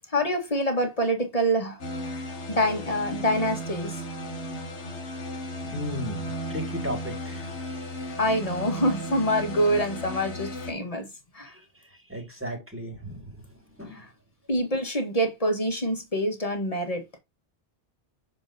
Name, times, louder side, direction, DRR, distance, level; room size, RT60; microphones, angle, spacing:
voice 1, 0.1-1.9 2.2-4.0 8.2-11.1 11.3-11.5 13.9-14.1 14.5-17.0, equal, 30° left, 1.8 m, -26 dB
sound 1, 1.8-10.7, equal, 75° left, 1.6 m, -35 dB
voice 2, 5.6-7.5 11.5-13.4 13.8-14.0, equal, 10° right, 2.2 m, -36 dB
7.2 x 4.8 x 2.7 m
omnidirectional pair, 1.2 m